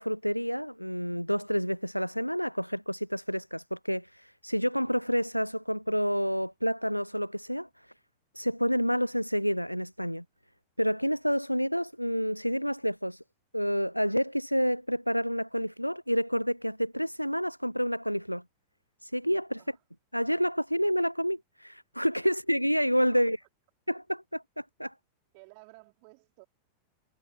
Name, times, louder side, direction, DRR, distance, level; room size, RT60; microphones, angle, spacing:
voice 1, 0.0-7.7 8.3-10.2 10.8-13.2 13.5-18.4 19.0-19.6 20.1-23.4 23.9-24.9, equal, 90° left, 0.3 m, -29 dB
voice 2, 25.3-26.4, right 35 dB, 45° right, 3.6 m, -55 dB
figure-of-eight pair, 90°, 0 cm